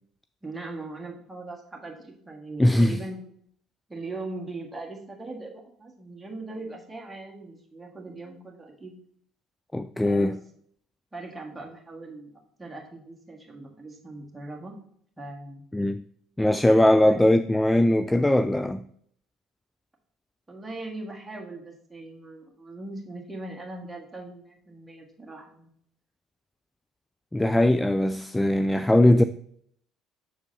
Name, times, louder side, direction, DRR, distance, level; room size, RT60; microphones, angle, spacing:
voice 1, 0.4-3.2 3.9-8.9 10.0-10.4 11.1-12.3 12.6-14.7 15.2-15.6 17.0-17.2 20.5-25.7, right 2 dB, 15° right, 1.7 m, -40 dB
voice 2, 2.6-3.0 9.7-10.3 15.7-16.0 16.4-18.8 27.3-29.2, left 1 dB, 10° left, 0.3 m, -20 dB
7.0 x 6.3 x 2.8 m
figure-of-eight pair, 55°, 0 cm